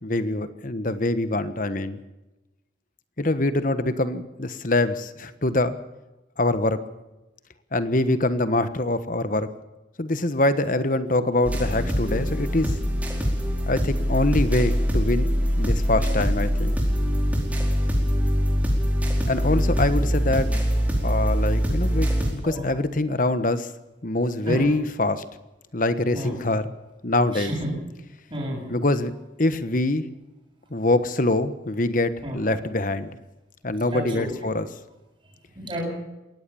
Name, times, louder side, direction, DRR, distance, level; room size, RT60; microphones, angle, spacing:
voice 1, 0.0-2.0 3.2-5.8 6.4-6.8 7.7-9.5 10.0-12.8 13.7-15.3 15.6-16.8 19.3-20.7 21.0-23.7 24.0-25.2 25.7-26.7 27.0-27.5 28.7-29.1 29.4-30.0 30.7-33.1 33.6-34.7, left 2 dB, 45° left, 12 dB, 1.3 m, -24 dB
sound 1, 11.4-22.3, equal, 10° right, 4.6 m, -23 dB
voice 2, 27.3-27.7 28.3-28.7 32.2-32.4 33.9-34.3 35.6-35.8, right 1 dB, 25° right, -3 dB, 7.4 m, -30 dB
22.0 x 17.5 x 7.1 m, 1.0 s
head